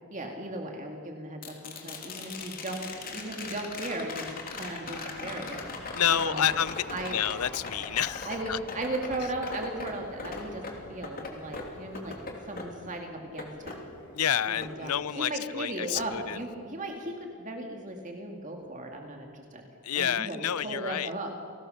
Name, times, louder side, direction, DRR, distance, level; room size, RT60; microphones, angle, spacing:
voice 1, 0.1-6.4 6.9-7.2 8.3-12.2 12.5-13.8 14.5-19.6 19.9-20.4 20.6-21.3, right 1 dB, 35° right, 2 dB, 2.3 m, -37 dB
sound 1, 1.4-15.5 16.0-17.0 19.2-19.3, left 3 dB, 40° left, 3.0 m, -40 dB
voice 2, 5.9-8.6 9.2-9.3 14.1-16.4 19.8-21.1, left 9 dB, 85° left, 18 dB, 0.6 m, -29 dB
29.0 x 18.5 x 6.6 m, 2.3 s
head